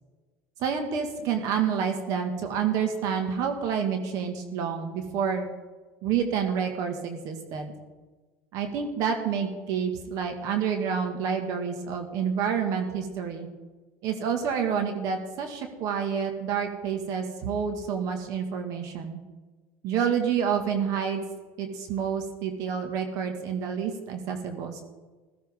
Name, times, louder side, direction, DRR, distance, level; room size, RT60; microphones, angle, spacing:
voice 1, 0.6-5.5 6.0-7.7 8.5-13.5 14.0-19.2 19.8-21.2 21.6-24.8, right 7 dB, 60° right, 5 dB, 1.9 m, -28 dB
15.5 x 15.0 x 3.7 m, 1.3 s
supercardioid pair, 100°, 7 cm